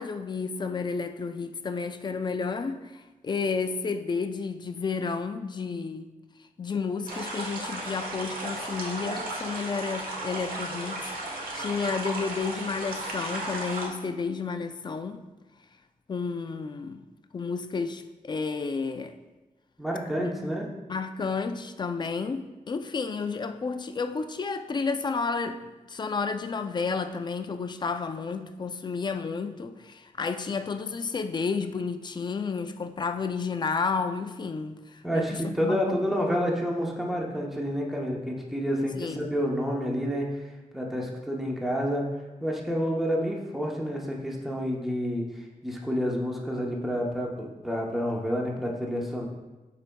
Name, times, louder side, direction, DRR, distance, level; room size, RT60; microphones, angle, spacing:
voice 1, 0.0-6.1 6.6-11.1 11.5-15.2 16.1-17.1 17.3-19.2 20.2-20.3 20.9-25.6 25.9-36.0 39.0-39.3, left 5 dB, 30° left, 0.4 m, -31 dB
sound 1, 7.1-13.9, right 2 dB, 85° right, 1.2 m, -35 dB
voice 2, 19.8-20.6 35.0-40.5 40.7-42.1 42.4-49.3, equal, ahead, 0.8 m, -29 dB
13.0 x 4.7 x 2.3 m
wide cardioid pair, 180°, 14 cm